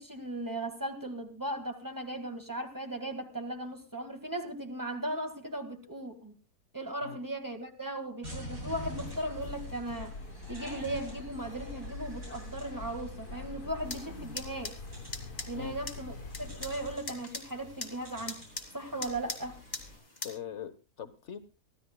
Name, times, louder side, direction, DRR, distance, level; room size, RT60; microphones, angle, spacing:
voice 1, 0.0-6.3 6.7-10.2 10.5-14.8 15.5-18.4 18.7-19.6, right 1 dB, 15° right, 1.8 m, -37 dB
sound 1, 8.2-20.0, equal, 65° right, 8.2 m, -47 dB
sound 2, 8.7-17.0, left 3 dB, 80° left, 2.2 m, -45 dB
sound 3, 13.8-20.3, left 3 dB, 30° left, 2.0 m, -43 dB
voice 2, 20.2-21.4, left 8 dB, 55° left, 1.3 m, -41 dB
24.5 x 15.0 x 2.3 m
omnidirectional pair, 1.6 m